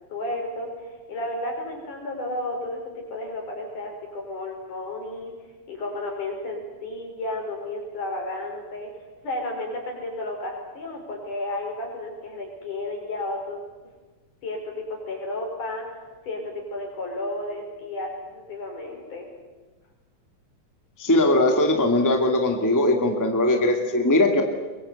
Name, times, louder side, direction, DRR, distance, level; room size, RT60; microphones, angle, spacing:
voice 1, 0.1-5.3 5.7-8.9 9.2-13.6 14.4-16.0 16.3-19.3, left 2 dB, 70° left, 1 dB, 6.6 m, -32 dB
voice 2, 21.0-24.4, left 1 dB, 5° left, 3 dB, 1.8 m, -20 dB
23.0 x 22.5 x 8.2 m, 1.2 s
omnidirectional pair, 3.7 m